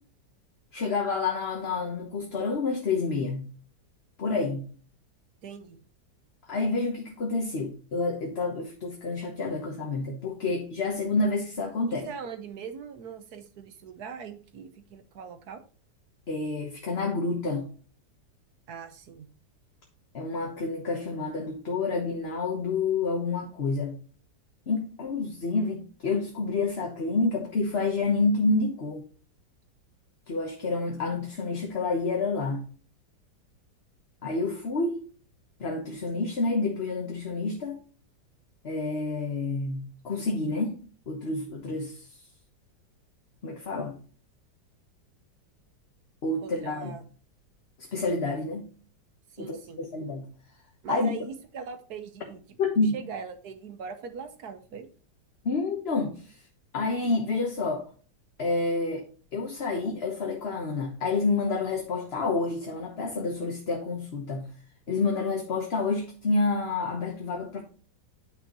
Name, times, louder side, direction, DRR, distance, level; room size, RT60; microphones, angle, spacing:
voice 1, 0.7-3.5 4.2-4.7 6.5-12.1 16.3-17.7 20.1-23.9 24.7-29.1 30.3-32.6 34.2-34.9 35.6-37.8 38.6-40.8 41.1-42.1 43.4-44.0 46.2-47.0 47.9-48.7 49.4-50.3 50.9-51.1 52.6-52.9 55.4-56.4 56.7-57.8 58.4-59.0 59.3-64.5 64.9-67.6, left 3 dB, 40° left, 1 dB, 1.2 m, -28 dB
voice 2, 5.4-5.8 11.9-15.6 18.7-19.3 46.4-47.0 49.3-49.8 50.8-52.4 52.8-54.9, right 6 dB, 65° right, 9 dB, 1.4 m, -40 dB
9.3 x 5.7 x 2.9 m, 0.41 s
omnidirectional pair, 1.9 m